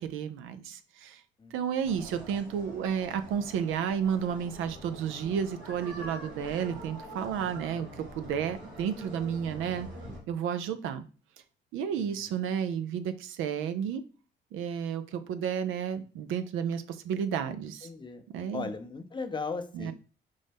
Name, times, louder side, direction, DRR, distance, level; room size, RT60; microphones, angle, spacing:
voice 1, 0.0-1.2 1.5-9.9 10.3-11.0 11.7-14.0 14.5-17.9 18.3-18.7 19.7-19.9, right 8 dB, 85° right, 11 dB, 0.4 m, -32 dB
sound 1, 1.8-10.2, equal, 60° right, 1.9 m, -45 dB
voice 2, 17.8-18.2 18.5-19.9, left 4 dB, 25° left, 7 dB, 0.5 m, -37 dB
5.2 x 2.1 x 3.4 m, 0.37 s
cardioid pair, 90°, 20 cm